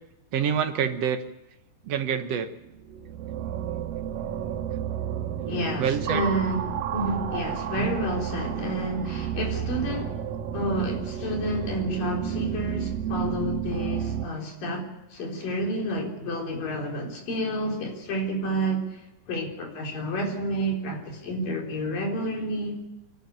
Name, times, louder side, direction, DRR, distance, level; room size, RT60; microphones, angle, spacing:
voice 1, 0.3-1.2 1.9-2.5 5.8-6.2 7.8-7.9, right 8 dB, 60° right, 8 dB, 1.9 m, -26 dB
sound 1, 2.6-14.2, right 9 dB, 80° right, 2.9 m, -31 dB
voice 2, 5.5-10.2 10.5-22.8, right 1 dB, 70° left, 1 dB, 5.6 m, -30 dB
27.5 x 12.0 x 9.3 m, 0.96 s
omnidirectional pair, 4.0 m